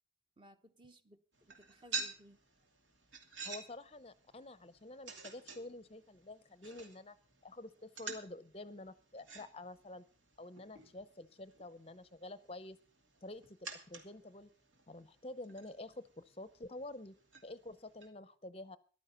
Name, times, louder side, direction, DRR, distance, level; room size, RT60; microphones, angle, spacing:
voice 1, 0.4-2.4, equal, 25° right, 0.9 m, -60 dB
sound 1, 1.3-18.1, right 4 dB, 80° right, 2.7 m, -50 dB
voice 2, 3.4-7.2 7.4-10.0 10.4-12.8 13.2-13.6 13.9-14.5 14.9-17.1 17.4-18.8, left 2 dB, 30° left, 0.6 m, -49 dB
14.5 x 11.5 x 5.6 m
head